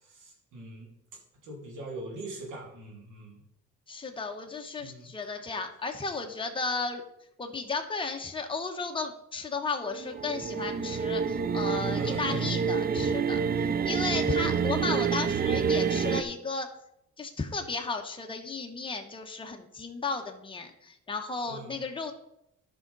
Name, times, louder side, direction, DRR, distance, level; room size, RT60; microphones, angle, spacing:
voice 1, 0.0-0.9 1.4-3.4 4.8-5.1 11.9-12.5 21.5-21.8, right 1 dB, 85° right, -1 dB, 2.7 m, -42 dB
voice 2, 3.9-7.0 7.4-16.7 17.2-22.1, left 4 dB, 15° left, 3 dB, 1.1 m, -34 dB
sound 1, 9.8-16.2, right 6 dB, 30° right, 0.5 m, -28 dB
11.5 x 5.7 x 4.0 m, 0.80 s
cardioid pair, 90°, 30 cm